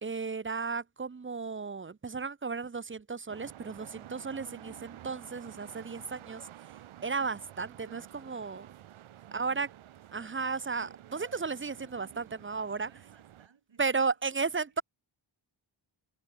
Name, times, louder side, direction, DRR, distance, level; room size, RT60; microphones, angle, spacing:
voice 1, 0.0-6.5 7.0-8.7 9.3-9.7 10.1-12.9 13.8-14.8, right 4 dB, 25° right, 0.7 m, -34 dB
sound 1, 3.3-13.5, right 12 dB, 80° right, 0.8 m, -51 dB
voice 2, 9.1-10.8 12.7-14.4 14.7-14.8, right 6 dB, 65° right, 6.4 m, -63 dB
wide cardioid pair, 130°, 48 cm